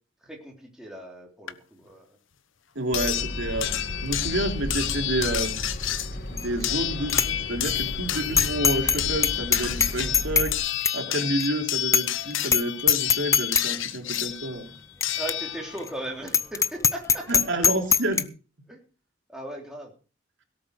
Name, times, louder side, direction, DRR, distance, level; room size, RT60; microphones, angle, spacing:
voice 1, 0.2-2.1 15.2-17.3 18.7-18.8 19.3-19.9, right 1 dB, 5° right, 0 dB, 3.6 m, -38 dB
sound 1, 1.5-1.6 2.9-15.9 17.2-17.3 17.6-17.7, left 12 dB, 70° left, 1.1 m, -30 dB
voice 2, 2.7-3.7 4.0-5.6 6.3-14.7 17.3-18.2, right 1 dB, 60° right, 3 dB, 3.4 m, -29 dB
sound 2, 2.9-10.6, equal, 45° left, 2.7 m, -34 dB
Bicycle bell, 6.4-6.7 7.1-7.3 7.6-7.7 8.4-9.0 9.2-10.5 10.8-11.0 11.4-11.5 11.9-12.2 12.4-12.6 12.9-13.6 14.1-14.2 15.0-15.1 15.3-15.4 15.8-15.9 16.3-18.2, left 6 dB, 15° left, 0.6 m, -21 dB
17.5 x 7.8 x 6.5 m, 0.36 s
head